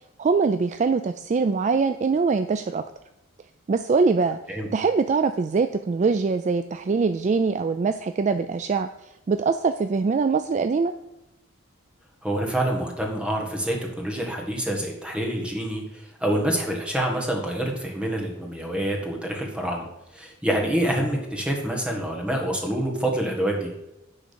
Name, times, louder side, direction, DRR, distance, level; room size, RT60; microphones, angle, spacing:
voice 1, 0.2-2.8 3.7-4.4 4.7-8.9 9.3-10.9, right 4 dB, 35° right, 9 dB, 0.3 m, -23 dB
voice 2, 12.2-19.9 20.1-23.7, right 1 dB, 5° right, 0 dB, 1.5 m, -27 dB
10.5 x 3.8 x 6.8 m, 0.93 s
head